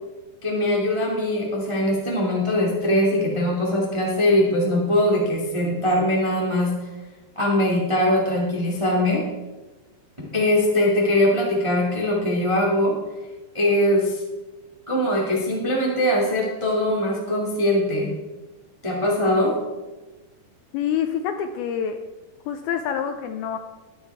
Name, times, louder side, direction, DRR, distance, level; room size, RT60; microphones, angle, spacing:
voice 1, 0.4-6.7 7.3-9.3 10.3-12.9 13.5-14.2 14.9-18.1 18.8-19.5, left 1 dB, 55° right, -3 dB, 0.3 m, -21 dB
voice 2, 20.7-22.0 22.5-23.6, left 8 dB, 85° left, 7 dB, 2.2 m, -26 dB
12.5 x 10.5 x 3.5 m, 1.1 s
omnidirectional pair, 4.9 m